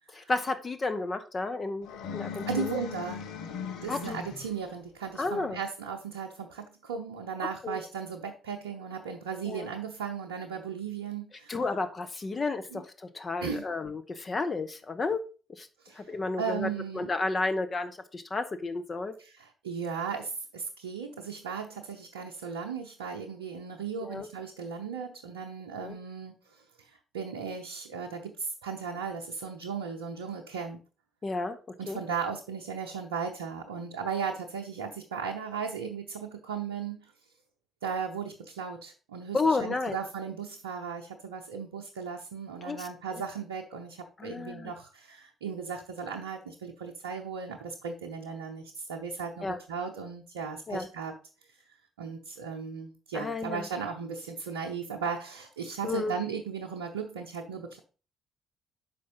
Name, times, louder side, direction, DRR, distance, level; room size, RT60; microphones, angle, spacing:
voice 1, 0.1-2.8 3.9-4.2 5.2-5.6 7.6-7.8 9.5-9.7 11.5-15.2 15.5-15.7 15.9-19.1 24.0-24.3 25.8-26.0 31.2-31.6 31.9-32.0 39.3-40.0 42.6-42.9 43.1-43.2 44.2-44.7 49.4-49.6 50.7-50.9 53.1-53.7 55.8-56.1, left 3 dB, 40° left, 8 dB, 1.0 m, -32 dB
sound 1, 1.8-4.7, left 6 dB, 75° left, 0.8 m, -38 dB
voice 2, 2.5-3.2 3.8-11.6 12.7-12.8 13.4-13.7 15.8-16.1 16.4-17.1 19.2-30.8 31.8-37.1 37.8-51.1 51.5-51.6 52.0-57.8, right 6 dB, 85° right, 0 dB, 0.7 m, -36 dB
5.9 x 5.2 x 5.2 m, 0.35 s
hypercardioid pair, 45°, 0 cm